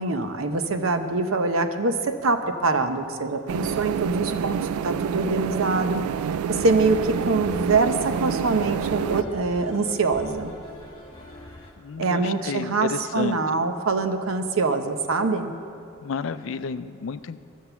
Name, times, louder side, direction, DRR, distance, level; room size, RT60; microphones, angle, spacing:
voice 1, 0.0-6.0 6.5-10.5 12.0-15.5, right 3 dB, 70° right, 8 dB, 0.8 m, -24 dB
sound 1, 3.5-9.2, right 8 dB, 85° right, 0.3 m, -28 dB
sound 2, 6.5-11.7, left 1 dB, 25° left, 1.2 m, -41 dB
voice 2, 11.8-13.4 16.0-17.4, left 5 dB, 65° left, 13 dB, 0.4 m, -31 dB
13.5 x 7.3 x 6.9 m, 2.5 s
head